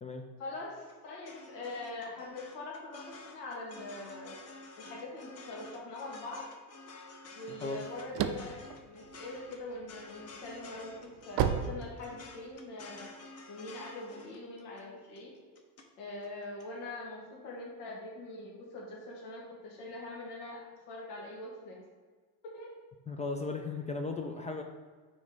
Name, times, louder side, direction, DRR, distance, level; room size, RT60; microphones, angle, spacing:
voice 1, 0.4-4.4 4.8-6.4 7.4-8.6 8.9-10.9 11.3-13.1 13.5-15.3 16.0-21.8 22.4-22.7, left 2 dB, 70° left, -2 dB, 2.0 m, -43 dB
sound 1, 0.7-15.9 16.2-16.6, left 3 dB, 30° left, 1.0 m, -50 dB
voice 2, 7.5-7.8 23.1-24.6, left 3 dB, 15° left, 4 dB, 0.4 m, -36 dB
sound 2, 7.7-9.8 10.3-12.6, right 9 dB, 40° right, 0.6 m, -32 dB
6.0 x 3.9 x 5.5 m, 1.5 s
hypercardioid pair, 90°, 48 cm